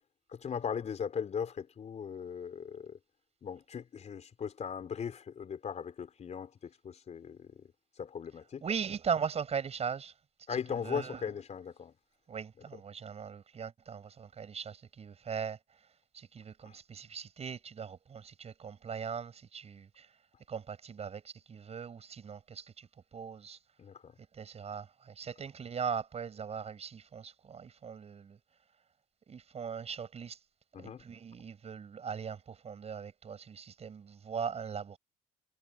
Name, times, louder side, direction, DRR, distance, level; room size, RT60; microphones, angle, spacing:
voice 1, 0.3-3.0 3.4-7.7 8.0-8.6 10.5-11.9 16.6-16.7 23.8-24.1 30.7-31.0, left 7 dB, 40° left, 4.3 m, -38 dB
voice 2, 8.6-10.1 10.8-11.2 12.3-15.6 16.1-20.1 20.5-22.9 23.1-23.6 24.3-28.4 29.3-30.4 30.8-35.0, right 6 dB, 40° right, 6.9 m, -39 dB
cardioid pair, 110°, 17 cm